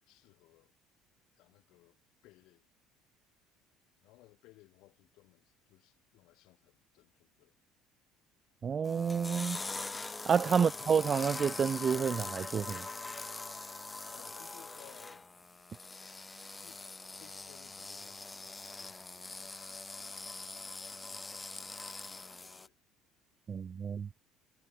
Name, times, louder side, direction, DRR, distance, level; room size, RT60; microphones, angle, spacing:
voice 1, 0.0-0.7 1.4-2.7 4.0-7.6 14.1-15.3 16.6-16.9 17.2-19.6 20.6-21.7 22.0-22.8, left 20 dB, 75° left, 7.3 m, -62 dB
voice 2, 8.6-9.6 10.3-12.9 23.5-24.1, right 7 dB, 35° right, 0.4 m, -29 dB
sound 1, 8.8-22.7, left 3 dB, 15° left, 2.1 m, -43 dB
supercardioid pair, 105°, 0 cm